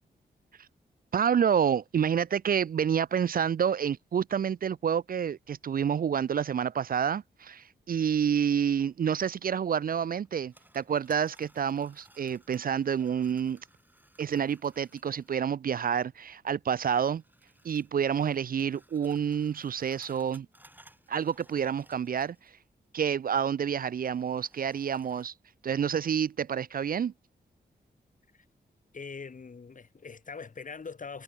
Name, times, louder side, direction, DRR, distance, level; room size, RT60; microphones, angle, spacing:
voice 1, 1.1-13.6 14.2-17.2 17.6-20.5 21.1-22.4 22.9-25.3 25.6-27.1, right 8 dB, 55° right, 0.5 m, -28 dB
sound 1, 10.2-15.4 16.9-22.6 22.8-22.9 23.9-25.3, right 1 dB, 10° right, 6.7 m, -61 dB
voice 2, 28.9-31.2, left 5 dB, 50° left, 2.3 m, -42 dB
cardioid pair, 75°, 18 cm